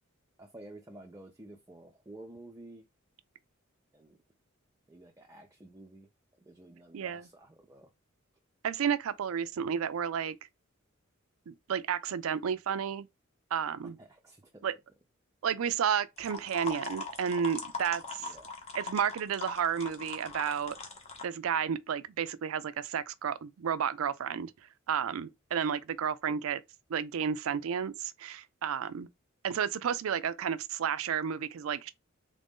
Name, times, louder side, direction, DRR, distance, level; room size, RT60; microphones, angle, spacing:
voice 1, 0.4-2.9 3.9-4.2 4.9-6.1 6.4-7.9 13.8-14.6 18.2-18.5, right 1 dB, 15° right, 0.5 m, -51 dB
voice 2, 6.9-7.3 8.6-10.4 11.5-13.1 13.5-14.0 14.6-14.7 15.4-18.3 18.7-20.8 21.2-24.5 24.9-26.6 26.9-29.1 29.4-31.9, right 7 dB, 85° right, 0.4 m, -32 dB
sound 1, 16.2-21.2, left 4 dB, 30° left, 0.8 m, -41 dB
3.6 x 2.5 x 3.6 m
head